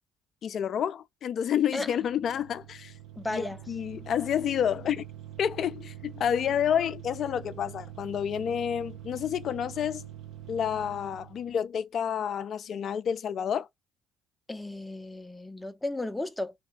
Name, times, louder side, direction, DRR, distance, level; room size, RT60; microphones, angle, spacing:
voice 1, 0.4-2.9 3.3-5.0 5.4-10.1 10.5-13.7, left 9 dB, 55° left, 0.4 m, -29 dB
sound 1, 1.8-11.6, right 11 dB, 70° right, 1.0 m, -45 dB
voice 2, 3.2-3.6 14.5-16.5, left 2 dB, 10° left, 0.6 m, -34 dB
2.8 x 2.2 x 2.5 m
hypercardioid pair, 50°, 0 cm